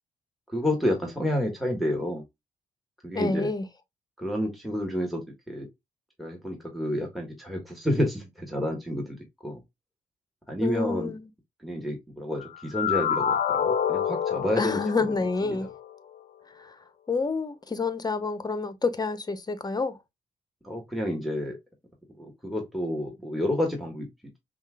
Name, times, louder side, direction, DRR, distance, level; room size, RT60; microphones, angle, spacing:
voice 1, 0.5-2.2 3.0-3.5 4.2-5.7 6.2-9.6 10.5-11.1 11.6-14.8 15.4-15.7 20.6-21.6 22.2-24.1, left 1 dB, ahead, 1.4 m, -30 dB
voice 2, 3.1-3.6 10.6-11.3 14.6-15.7 16.5-20.0, left 4 dB, 25° left, 0.8 m, -28 dB
sound 1, 12.4-15.9, left 8 dB, 55° left, 0.6 m, -28 dB
5.5 x 2.4 x 2.3 m
supercardioid pair, 60°, 15 cm